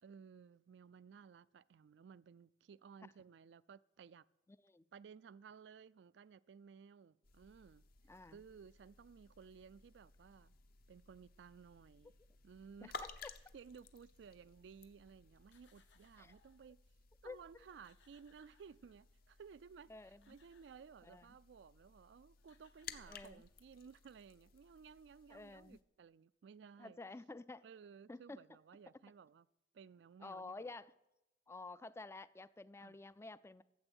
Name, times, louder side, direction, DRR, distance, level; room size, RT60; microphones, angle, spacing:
voice 1, 0.0-4.2 4.9-7.8 8.2-10.6 10.9-12.1 12.4-13.0 13.5-16.8 17.2-27.0 27.6-29.5 29.7-30.7 32.8-33.0, right 6 dB, 70° right, 0.4 m, -58 dB
sound 1, 7.2-25.8, left 4 dB, 55° left, 0.8 m, -57 dB
voice 2, 8.1-8.4 13.0-13.1 16.2-16.3 17.2-17.6 19.9-20.4 21.0-21.3 23.1-23.4 25.3-25.8 26.8-27.7 28.1-28.4 30.2-30.9 31.5-33.6, left 3 dB, 15° left, 0.3 m, -51 dB
sound 2, 15.4-16.7 17.3-17.4 17.6-19.2 19.9-21.0 22.1-22.2 22.4-23.6, left 5 dB, 80° left, 1.5 m, -74 dB
13.0 x 7.7 x 8.0 m
head